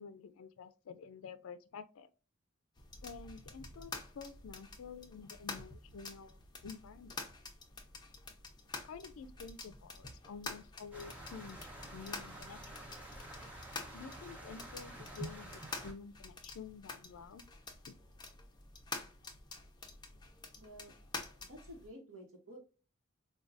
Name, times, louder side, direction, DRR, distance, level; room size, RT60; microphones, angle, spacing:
voice 1, 0.0-2.1 3.0-7.1 8.8-12.7 13.9-17.4 17.9-18.0, left 5 dB, 75° left, 0.4 m, -50 dB
sound 1, 2.8-21.9, left 3 dB, 20° left, 0.7 m, -48 dB
sound 2, 10.9-15.9, right 1 dB, 10° right, 0.8 m, -48 dB
voice 2, 20.6-20.9 21.4-22.6, equal, 75° right, 1.0 m, -52 dB
4.6 x 2.3 x 2.5 m
head